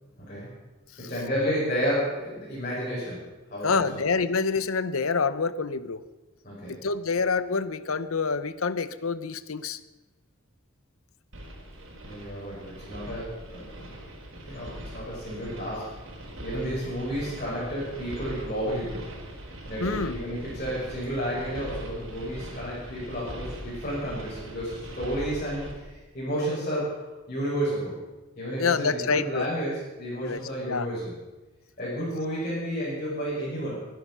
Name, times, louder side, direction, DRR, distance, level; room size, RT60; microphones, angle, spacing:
voice 1, 1.0-4.0 6.4-6.8 12.0-14.0 14.3-16.0 16.4-19.1 19.7-28.0 28.4-31.1 31.8-33.9, equal, 40° left, -8 dB, 6.1 m, -31 dB
voice 2, 3.6-6.0 6.7-9.8 19.8-20.2 28.6-29.5 30.2-30.4 30.7-30.9, left 4 dB, 75° left, 15 dB, 0.8 m, -27 dB
sound 1, 11.3-25.7, equal, 65° right, 4.6 m, -41 dB
23.5 x 10.5 x 5.6 m, 1.2 s
head